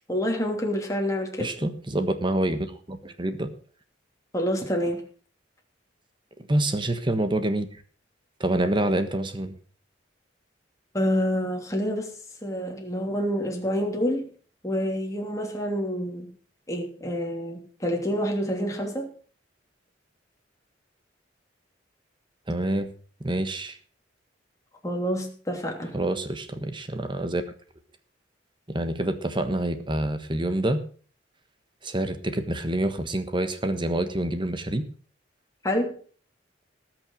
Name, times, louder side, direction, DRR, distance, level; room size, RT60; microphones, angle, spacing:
voice 1, 0.1-1.5 4.3-5.0 10.9-12.1 12.4-14.3 14.6-16.3 16.7-19.1 24.8-26.0 35.6-35.9, equal, 15° left, 1 dB, 3.0 m, -27 dB
voice 2, 1.4-3.5 6.5-7.7 8.4-9.5 22.5-22.9 23.2-23.8 25.9-27.4 28.7-30.8 31.8-34.8, right 1 dB, 25° right, 9 dB, 1.4 m, -27 dB
19.0 x 6.3 x 6.4 m, 0.42 s
head